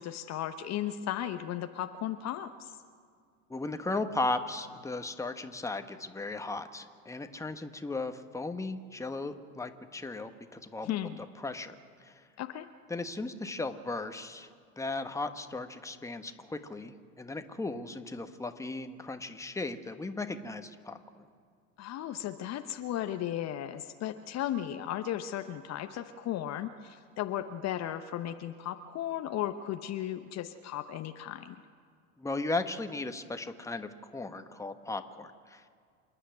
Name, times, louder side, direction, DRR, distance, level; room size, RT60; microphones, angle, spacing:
voice 1, 0.0-2.7 10.8-11.2 12.4-12.7 21.8-31.6, left 11 dB, 40° left, 8 dB, 1.0 m, -35 dB
voice 2, 3.5-10.9 11.4-11.7 12.0-12.2 12.9-14.5 14.8-21.3 32.2-35.7, left 3 dB, 5° left, 8 dB, 1.3 m, -36 dB
27.5 x 9.9 x 9.5 m, 2.1 s
figure-of-eight pair, 75°, 41 cm